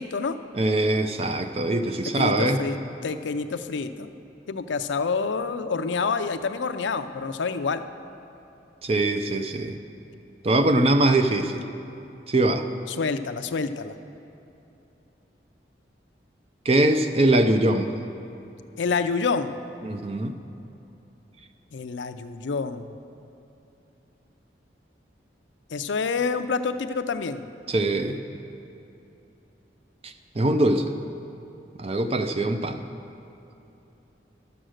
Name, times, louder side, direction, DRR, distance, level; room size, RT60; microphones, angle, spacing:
voice 1, 0.0-0.4 2.1-2.8 3.0-4.1 4.5-7.8 12.9-14.0 18.8-19.6 21.7-22.9 25.7-27.4, left 4 dB, 85° left, 10 dB, 0.5 m, -27 dB
voice 2, 0.6-2.6 8.8-9.8 10.4-11.6 12.3-12.7 16.7-17.9 19.8-20.3 27.7-28.2 30.0-30.9 31.8-32.8, right 1 dB, 35° right, 8 dB, 0.5 m, -22 dB
12.0 x 7.7 x 6.4 m, 2.9 s
head